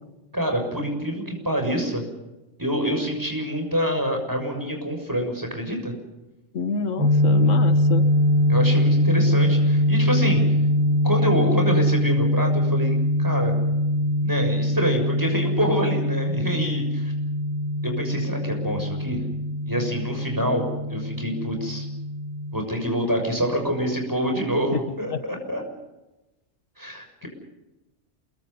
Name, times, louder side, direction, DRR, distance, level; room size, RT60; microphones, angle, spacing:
voice 1, 0.3-2.0 2.6-5.9 8.5-10.4 11.0-13.5 14.2-17.1 17.8-19.2 19.7-20.6 20.9-21.9 22.5-25.6 26.8-27.3, equal, 15° right, 3 dB, 6.6 m, -26 dB
voice 2, 6.5-8.1 25.1-25.2, left 5 dB, 85° left, 10 dB, 1.8 m, -28 dB
sound 1, 7.0-22.6, left 1 dB, 85° right, 4.3 m, -22 dB
28.5 x 23.0 x 5.6 m, 1.0 s
omnidirectional pair, 1.3 m